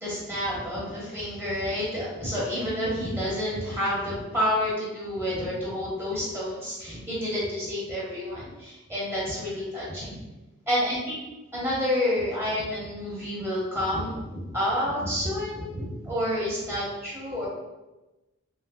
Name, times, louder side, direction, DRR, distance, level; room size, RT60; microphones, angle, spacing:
voice 1, 0.0-10.2 10.7-11.2 11.5-17.5, left 1 dB, 10° right, -7 dB, 0.9 m, -29 dB
3.1 x 3.1 x 2.3 m, 1.1 s
head